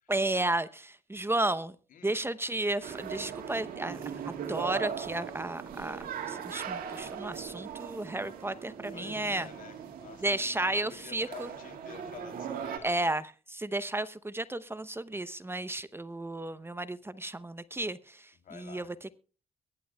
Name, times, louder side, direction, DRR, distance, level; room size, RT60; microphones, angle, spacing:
voice 1, 0.1-1.7 2.0-4.0 4.3-9.5 10.2-11.5 12.8-19.1, right 2 dB, 15° right, 0.8 m, -33 dB
voice 2, 1.9-2.2 8.9-12.9 18.4-18.9, left 7 dB, 75° left, 3.2 m, -50 dB
sound 1, 2.8-12.8, right 8 dB, 90° right, 2.0 m, -39 dB
23.0 x 11.5 x 2.3 m
cardioid pair, 70°, 14 cm